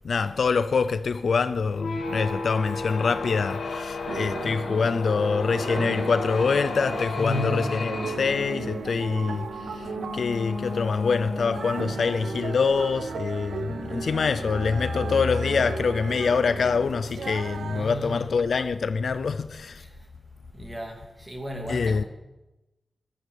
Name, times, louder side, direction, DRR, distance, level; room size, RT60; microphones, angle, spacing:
voice 1, 0.0-19.8 21.7-22.0, left 5 dB, 65° left, 0.5 m, -25 dB
sound 1, 1.7-12.1, left 4 dB, 80° left, 2.0 m, -34 dB
sound 2, 4.1-17.9, right 5 dB, 85° right, 0.7 m, -36 dB
voice 2, 7.1-7.7 17.7-18.4 20.5-22.0, left 1 dB, 15° right, 2.7 m, -34 dB
14.5 x 10.0 x 6.9 m
wide cardioid pair, 160°, 0 cm